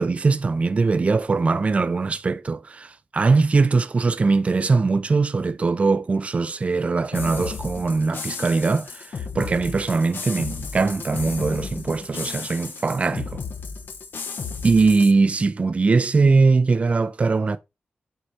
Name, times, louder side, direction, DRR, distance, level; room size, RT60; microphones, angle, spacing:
voice 1, 0.0-13.4 14.6-17.6, right 4 dB, 35° right, 0.5 m, -21 dB
sound 1, 7.1-15.1, left 5 dB, 65° left, 0.9 m, -34 dB
6.5 x 4.1 x 4.4 m
wide cardioid pair, 160°, 4 cm